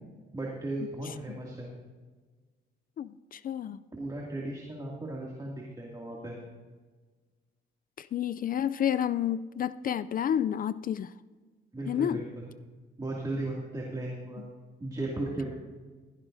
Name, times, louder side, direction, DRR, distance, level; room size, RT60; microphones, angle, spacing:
voice 1, 0.3-1.7 3.9-6.4 11.7-12.3 13.0-14.4 14.8-15.4, right 2 dB, 20° right, -3 dB, 2.4 m, -36 dB
voice 2, 3.0-3.8 8.0-11.1 11.9-12.2 14.4-14.5, left 9 dB, 45° left, 15 dB, 0.4 m, -30 dB
16.0 x 15.0 x 2.7 m, 1.4 s
cardioid pair, 90°, 20 cm